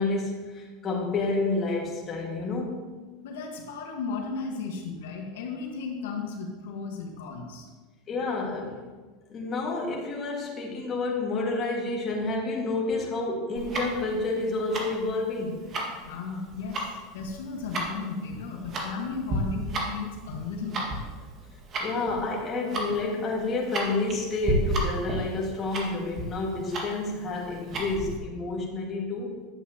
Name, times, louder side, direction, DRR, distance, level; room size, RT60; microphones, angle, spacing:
voice 1, 0.0-2.9 8.1-8.8 9.3-15.6 21.8-29.5, left 3 dB, 30° left, -2 dB, 1.8 m, -29 dB
voice 2, 3.2-7.7 16.0-21.1, left 4 dB, 90° left, 1 dB, 1.4 m, -35 dB
Tick-tock, 13.5-28.2, right 1 dB, 35° right, 1.7 m, -33 dB
10.5 x 7.7 x 2.9 m, 1.4 s
supercardioid pair, 135°, 0 cm